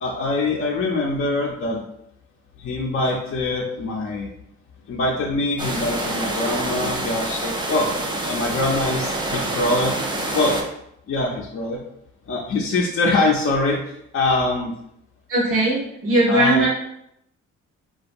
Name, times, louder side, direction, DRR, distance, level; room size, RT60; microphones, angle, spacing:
voice 1, 0.0-1.8 2.6-4.3 4.9-7.9 8.3-9.9 10.3-10.6 11.1-11.8 12.3-13.8 14.1-14.7 16.3-16.6, left 2 dB, 45° left, -2 dB, 0.5 m, -23 dB
sound 1, 5.6-10.6, right 1 dB, 15° right, 0.4 m, -27 dB
voice 2, 15.3-16.7, right 1 dB, 45° right, -4 dB, 0.7 m, -19 dB
2.7 x 2.3 x 2.5 m, 0.78 s
cardioid pair, 90°, 30 cm